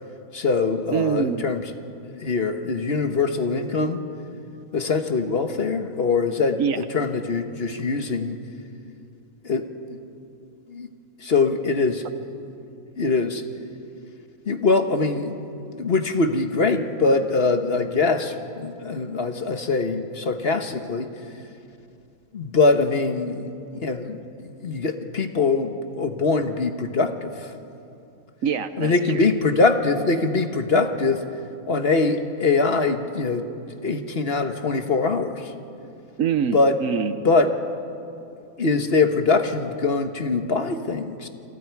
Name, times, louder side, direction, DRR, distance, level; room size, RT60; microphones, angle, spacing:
voice 1, 0.3-1.6 2.0-4.0 4.7-8.4 9.4-10.0 10.7-10.9 11.2-12.1 13.0-13.4 14.5-15.4 15.7-21.1 22.3-27.5 28.8-31.2 31.7-33.5 33.8-35.5 36.5-36.8 37.2-37.5 38.6-41.3, left 3 dB, 45° left, 7 dB, 1.4 m, -23 dB
voice 2, 0.9-1.4 6.6-6.8 28.4-29.3 36.2-37.1, right 7 dB, 70° right, 11 dB, 1.2 m, -25 dB
28.5 x 25.5 x 4.7 m, 2.6 s
omnidirectional pair, 1.5 m